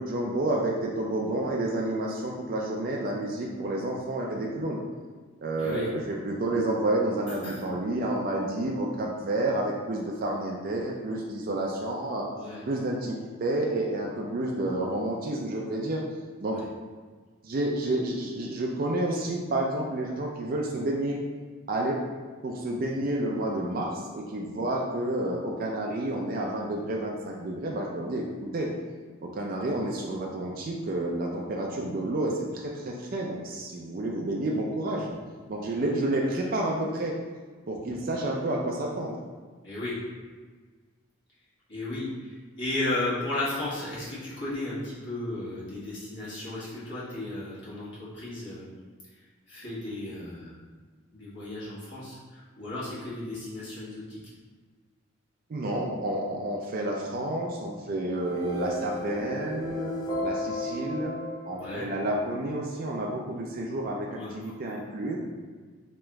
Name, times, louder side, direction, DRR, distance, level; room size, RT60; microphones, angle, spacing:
voice 1, 0.0-4.8 5.4-12.3 12.7-16.0 16.4-16.6 17.4-21.2 21.7-22.0 22.4-28.7 29.2-35.1 35.5-37.1 37.7-39.1 55.5-61.2 61.5-65.2, right 1 dB, 40° right, -1 dB, 0.3 m, -30 dB
voice 2, 5.6-5.9 7.3-7.6 12.3-12.6 16.5-16.6 37.9-38.0 39.6-40.0 41.7-48.7 49.5-50.5 51.1-54.2 61.6-61.9 64.2-64.5, left 2 dB, 55° left, -9 dB, 1.4 m, -34 dB
sound 1, 58.1-62.4, left 1 dB, 20° left, 0.6 m, -34 dB
3.2 x 2.9 x 3.5 m, 1.5 s
head